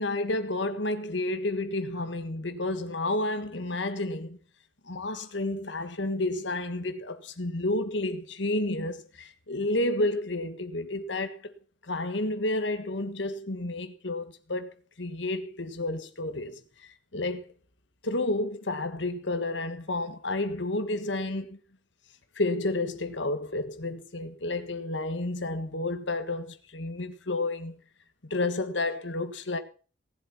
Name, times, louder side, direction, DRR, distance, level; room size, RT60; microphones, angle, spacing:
voice 1, 0.0-4.4 4.8-11.5 11.8-17.5 18.0-21.6 22.3-27.8 28.3-29.6, left 2 dB, 65° left, 1.6 m, -31 dB
18.0 x 7.7 x 5.8 m
head